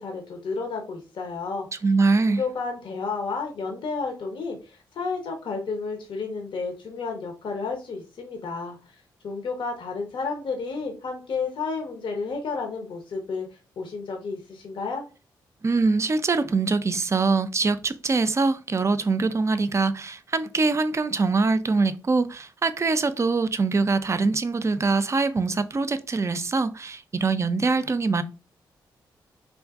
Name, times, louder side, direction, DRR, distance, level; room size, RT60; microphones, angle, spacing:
voice 1, 0.0-1.7 2.3-9.0 9.2-13.5 13.8-15.1, left 4 dB, 65° left, 0.8 m, -31 dB
voice 2, 1.8-2.4 15.6-28.2, right 3 dB, 35° right, 0.4 m, -23 dB
3.7 x 2.5 x 2.4 m
supercardioid pair, 45°, 9 cm